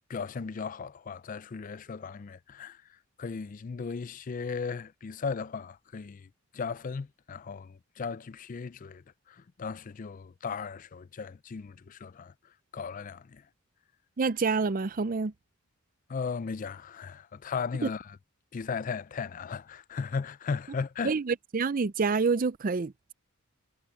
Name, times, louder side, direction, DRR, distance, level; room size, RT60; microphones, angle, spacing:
voice 1, 0.1-2.8 3.2-12.3 12.7-13.4 16.1-18.2 18.5-21.2, left 5 dB, 35° left, 0.4 m, -36 dB
voice 2, 14.2-15.3 17.8-17.9 21.0-23.1, right 4 dB, 40° right, 0.5 m, -27 dB
head